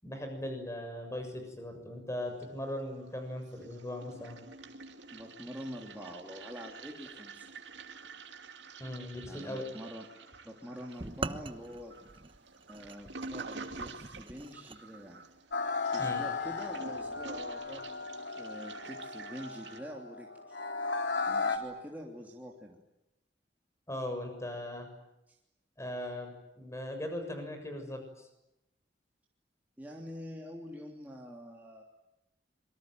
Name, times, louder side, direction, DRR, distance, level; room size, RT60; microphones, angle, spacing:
voice 1, 0.0-4.4 8.8-9.7 16.0-16.2 23.9-24.9 25.8-28.3, left 1 dB, 15° left, 5 dB, 7.0 m, -39 dB
Toilet flush, 2.2-3.1 3.3-19.8, right 4 dB, 80° right, 2.7 m, -48 dB
voice 2, 5.1-7.5 9.2-10.1 10.4-11.9 12.2-12.3 12.7-15.2 15.9-18.1 18.4-20.6 21.3-22.8 25.3-25.4 29.8-31.8, equal, 10° right, -2 dB, 3.2 m, -46 dB
sound 1, 11.0-14.8, right 3 dB, 30° right, 1.1 m, -42 dB
sound 2, 15.5-21.6, left 4 dB, 75° left, 3.1 m, -35 dB
27.0 x 23.5 x 9.3 m, 0.90 s
head